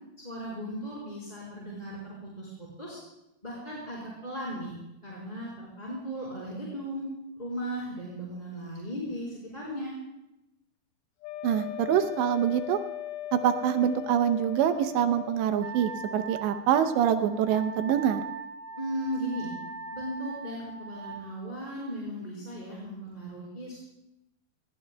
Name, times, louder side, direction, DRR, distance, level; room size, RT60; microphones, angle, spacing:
voice 1, 0.2-3.0 3.4-4.7 5.0-7.0 7.4-9.9 18.8-19.5 19.9-23.8, equal, 10° left, -7 dB, 3.7 m, -37 dB
Wind instrument woodwind instrument, 11.2-15.5, left 12 dB, 80° left, 2.2 m, -38 dB
voice 2, 11.4-12.8 13.3-18.2, right 9 dB, 85° right, 8 dB, 3.0 m, -25 dB
Wind instrument woodwind instrument 2, 15.6-21.2, right 5 dB, 55° right, 4.4 m, -40 dB
26.0 x 20.0 x 2.3 m, 0.91 s
omnidirectional pair, 4.9 m